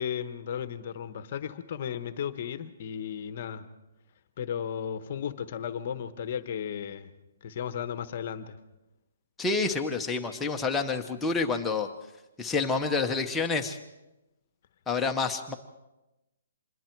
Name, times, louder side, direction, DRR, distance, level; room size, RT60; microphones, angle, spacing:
voice 1, 0.0-3.7 4.4-7.1 7.4-8.6, left 8 dB, 40° left, 11 dB, 1.1 m, -35 dB
voice 2, 9.4-11.9 12.4-13.8 14.9-15.5, left 4 dB, 5° left, 3 dB, 0.9 m, -28 dB
26.0 x 21.5 x 4.6 m, 0.99 s
hypercardioid pair, 170°, 0 cm